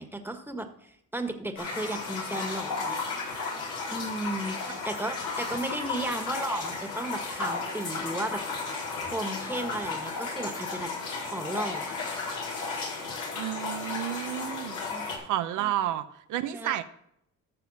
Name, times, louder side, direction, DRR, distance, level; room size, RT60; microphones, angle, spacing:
voice 1, 0.0-3.0 3.9-8.4 9.0-10.9 11.2-11.9 14.4-15.1 15.6-15.7 16.5-16.8, right 1 dB, 5° right, 6 dB, 1.5 m, -35 dB
sound 1, 1.6-15.2, left 4 dB, 80° left, 4.2 m, -34 dB
voice 2, 13.3-14.8 15.2-16.8, right 12 dB, 90° right, 9 dB, 0.8 m, -31 dB
13.0 x 6.8 x 4.2 m, 0.76 s
cardioid pair, 90°, 30 cm